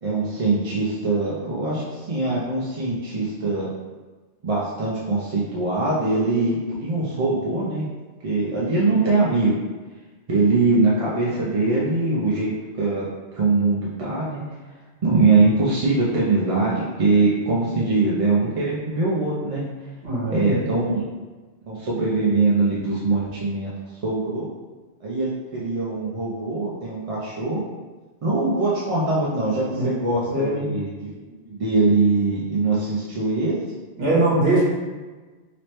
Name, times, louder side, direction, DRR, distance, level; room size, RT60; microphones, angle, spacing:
voice 1, 0.0-3.7 4.4-7.8 8.2-9.5 10.3-13.1 13.4-14.4 15.0-19.7 20.3-21.1 21.7-23.7 24.0-24.5 25.0-27.6 28.2-31.1 31.5-33.6, right 3 dB, 45° right, -6 dB, 0.5 m, -22 dB
voice 2, 20.0-20.6 29.7-29.9 30.3-30.6 34.0-34.6, right 2 dB, 60° right, -6 dB, 1.2 m, -21 dB
3.0 x 3.0 x 3.1 m, 1.3 s
omnidirectional pair, 1.2 m